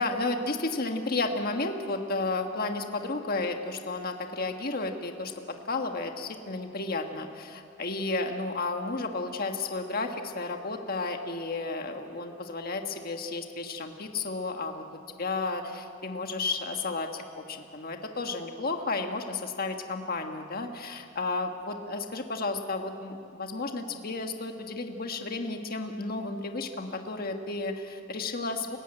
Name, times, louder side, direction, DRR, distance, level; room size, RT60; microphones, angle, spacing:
voice 1, 0.0-14.8 15.2-28.8, left 3 dB, 50° left, 4 dB, 1.5 m, -32 dB
28.5 x 16.0 x 8.8 m, 2.6 s
head